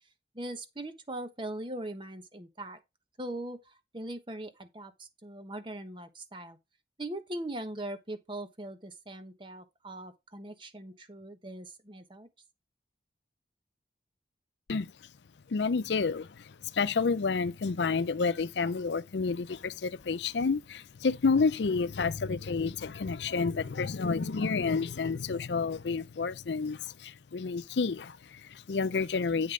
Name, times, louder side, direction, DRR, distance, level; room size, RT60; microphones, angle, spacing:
voice 1, 0.3-2.8 3.2-6.6 7.0-12.3, right 1 dB, 25° right, 1.1 m, -40 dB
voice 2, 15.5-29.5, left 4 dB, 80° left, 0.5 m, -30 dB
8.6 x 5.2 x 3.8 m
head